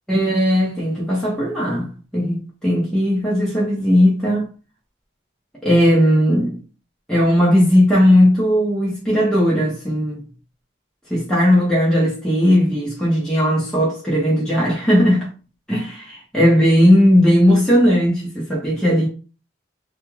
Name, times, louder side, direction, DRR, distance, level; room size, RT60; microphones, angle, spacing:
voice 1, 0.1-4.4 5.6-6.6 7.1-10.2 11.1-15.3 15.7-19.1, equal, 5° left, 0.7 m, -17 dB
2.4 x 2.3 x 3.1 m
head